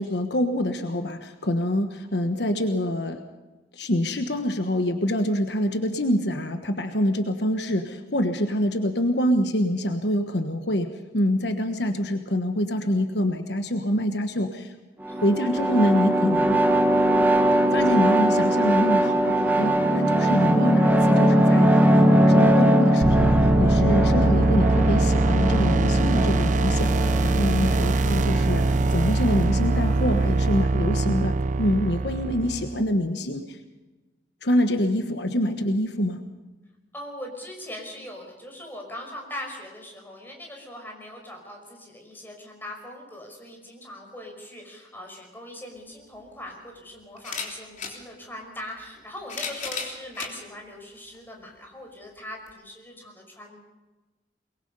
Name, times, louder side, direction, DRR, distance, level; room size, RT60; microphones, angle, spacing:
voice 1, 0.0-3.2 3.7-14.7 15.2-16.6 17.7-33.6 34.4-36.2, equal, 65° left, 6 dB, 1.3 m, -25 dB
sound 1, 15.0-30.4, right 1 dB, 10° right, 1.6 m, -21 dB
voice 2, 15.1-15.6 36.9-53.6, left 1 dB, 10° left, 1 dB, 5.5 m, -41 dB
sound 2, 23.0-32.8, right 3 dB, 45° right, 0.6 m, -23 dB
sound 3, 45.8-45.9 47.2-48.0 49.0-50.3 51.1-51.2 52.5-52.6, left 5 dB, 45° left, 3.4 m, -34 dB
23.0 x 22.5 x 5.5 m, 1.2 s
head